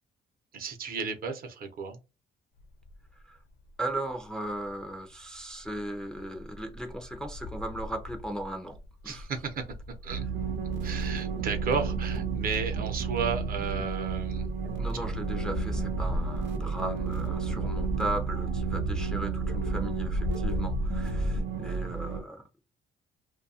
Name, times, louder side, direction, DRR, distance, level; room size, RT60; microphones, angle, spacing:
voice 1, 0.5-2.0 9.0-9.6 10.0-10.2 10.8-14.6 14.9-15.0, right 5 dB, 55° right, 0.7 m, -33 dB
sound 1, 2.6-3.2 3.6-4.9 5.4-21.4, left 2 dB, 75° left, 0.8 m, -38 dB
voice 2, 3.8-8.8 9.0-9.3 14.8-22.4, right 1 dB, 5° left, 0.4 m, -37 dB
sound 2, 10.1-22.2, right 5 dB, 85° right, 0.7 m, -32 dB
2.6 x 2.3 x 2.7 m
cardioid pair, 160°, 18 cm